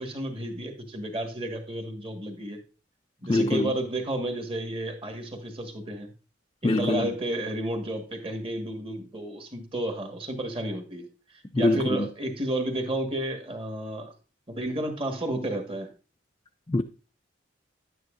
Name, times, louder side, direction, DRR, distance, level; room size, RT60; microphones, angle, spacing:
voice 1, 0.0-2.6 3.2-6.1 6.6-14.1 14.5-15.9, right 1 dB, 30° right, 1.6 m, -32 dB
voice 2, 3.3-3.7 6.6-7.1 11.5-12.1 16.7-16.8, left 2 dB, 25° left, 0.4 m, -24 dB
10.5 x 9.4 x 2.6 m
head